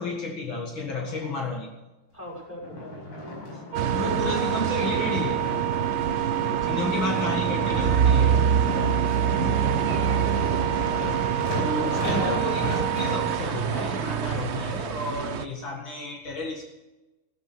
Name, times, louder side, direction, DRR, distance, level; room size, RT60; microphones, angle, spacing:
voice 1, 0.0-1.7 3.9-5.4 6.6-8.5 11.5-16.6, left 3 dB, 65° left, 1 dB, 2.7 m, -32 dB
voice 2, 0.9-1.3 2.1-3.2 6.7-7.2 9.3-9.8, equal, 5° left, -1 dB, 6.0 m, -43 dB
sound 1, 2.6-13.6 14.2-14.3, left 1 dB, 85° left, 6.1 m, -33 dB
sound 2, 3.7-15.4, right 7 dB, 70° right, 0.6 m, -26 dB
sound 3, 3.7-13.5, right 23 dB, 90° right, 1.7 m, -29 dB
15.0 x 14.0 x 6.1 m, 1.1 s
omnidirectional pair, 2.4 m